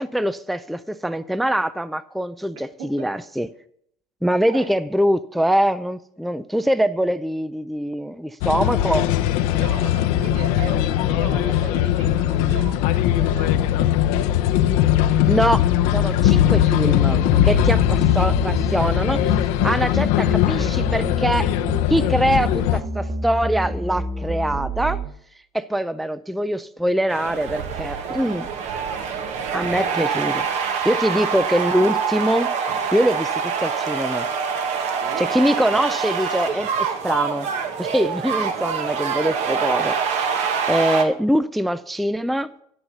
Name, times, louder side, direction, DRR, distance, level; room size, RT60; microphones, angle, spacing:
voice 1, 0.0-3.5 4.2-9.1 15.3-15.7 15.9-21.5 21.9-25.0 25.5-28.5 29.5-30.4 30.8-32.5 32.9-34.3 35.2-37.5 37.8-40.3 40.7-42.5, equal, ahead, 0.3 m, -23 dB
sound 1, 8.4-22.8, left 12 dB, 80° left, 0.8 m, -20 dB
voice 2, 9.5-14.3 28.6-30.8 31.0-31.2 35.0-35.3, right 4 dB, 75° right, 2.4 m, -38 dB
sound 2, 16.2-25.1, equal, 30° right, 1.4 m, -28 dB
sound 3, 27.1-41.0, right 6 dB, 60° right, 1.4 m, -25 dB
11.0 x 5.6 x 7.9 m
cardioid pair, 130°, 13 cm